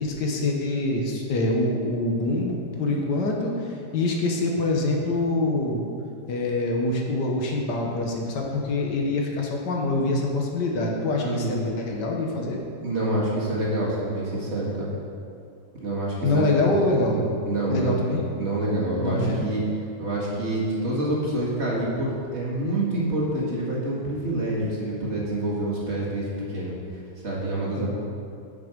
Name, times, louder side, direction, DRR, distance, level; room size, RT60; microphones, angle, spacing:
voice 1, 0.0-3.5 3.9-5.9 6.3-12.6 16.2-17.3 17.7-18.2 19.0-19.5 27.8-27.9, left 2 dB, 75° left, 0 dB, 1.7 m, -25 dB
voice 2, 11.2-11.6 12.8-14.9 15.8-16.7 17.1-18.1 18.4-19.6 20.0-26.7 27.2-27.9, right 1 dB, 40° right, -6 dB, 2.1 m, -27 dB
9.4 x 6.2 x 5.1 m, 2.4 s
omnidirectional pair, 1.9 m